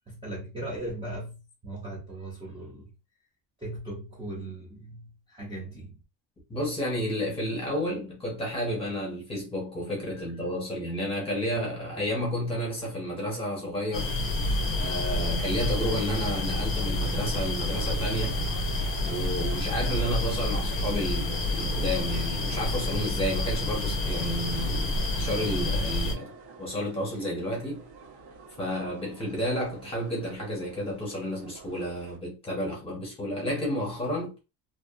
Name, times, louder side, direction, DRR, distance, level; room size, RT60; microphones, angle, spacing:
voice 1, 0.1-2.9 3.6-6.0 10.2-10.3, right 1 dB, 10° right, 0.6 m, -38 dB
voice 2, 6.5-14.2 14.7-18.5 19.0-26.3 26.6-27.8 28.6-34.3, equal, 15° left, 1.0 m, -31 dB
sound 1, 13.9-26.1, left 2 dB, 30° left, 0.6 m, -28 dB
sound 2, 14.4-32.2, right 5 dB, 85° right, 1.2 m, -48 dB
2.7 x 2.3 x 2.5 m
cardioid pair, 180°, 44 cm